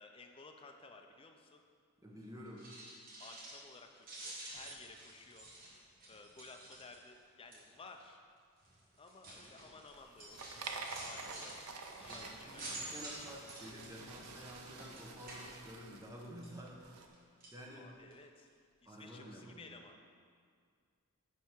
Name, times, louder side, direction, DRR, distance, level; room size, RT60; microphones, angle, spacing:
voice 1, 0.0-1.6 3.2-5.5 6.1-8.2 9.0-10.6 11.0-11.7 11.9-12.8 17.3-17.4 17.8-18.5 18.8-20.0, left 3 dB, 25° left, 4 dB, 0.5 m, -56 dB
voice 2, 2.0-2.6 12.1-12.6 12.9-17.0 17.5-17.9 18.9-19.7, equal, 15° right, -2 dB, 0.9 m, -50 dB
sound 1, 2.5-3.8 4.0-7.2 7.5-7.9 8.6-16.1 16.4-17.1 17.4-17.6 18.1-18.2 18.5-18.6, right 1 dB, 40° right, 1.4 m, -50 dB
sound 2, 9.9-17.1, right 4 dB, 80° right, 0.6 m, -49 dB
10.0 x 3.5 x 4.6 m, 2.1 s
head